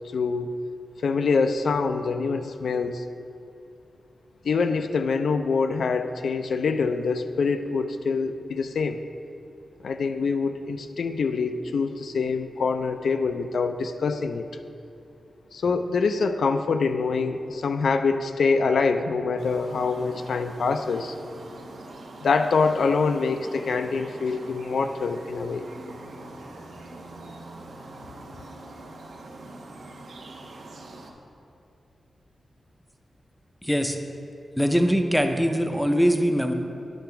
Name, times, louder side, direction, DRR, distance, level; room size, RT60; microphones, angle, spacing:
voice 1, 0.1-0.6 1.0-3.0 4.4-9.0 9.8-14.5 15.5-21.1 22.2-25.7, left 4 dB, 70° left, 8 dB, 0.3 m, -25 dB
sound 1, 19.4-31.1, right 2 dB, 70° right, 0.8 m, -43 dB
voice 2, 33.6-34.0 34.6-36.5, equal, ahead, 6 dB, 0.4 m, -22 dB
10.0 x 3.4 x 5.7 m, 2.7 s
wide cardioid pair, 155°, 0 cm